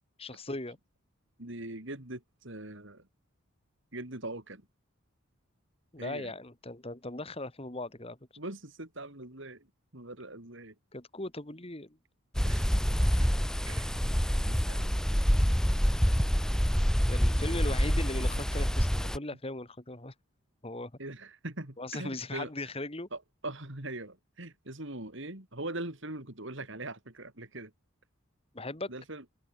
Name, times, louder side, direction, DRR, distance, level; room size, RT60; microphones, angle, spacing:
voice 1, 0.2-0.8 5.9-8.2 10.9-12.0 17.1-20.1 20.6-20.9 21.8-23.1 28.5-28.9, left 2 dB, 25° left, 2.0 m, -38 dB
voice 2, 1.4-3.1 3.9-4.7 6.0-6.3 8.4-9.7 9.9-10.7 12.4-13.3 13.7-13.9 14.4-15.0 18.1-18.4 21.0-22.5 23.1-27.7 28.9-29.2, right 2 dB, 60° right, 3.4 m, -42 dB
sound 1, 12.3-19.2, equal, 5° left, 0.9 m, -26 dB
open air
head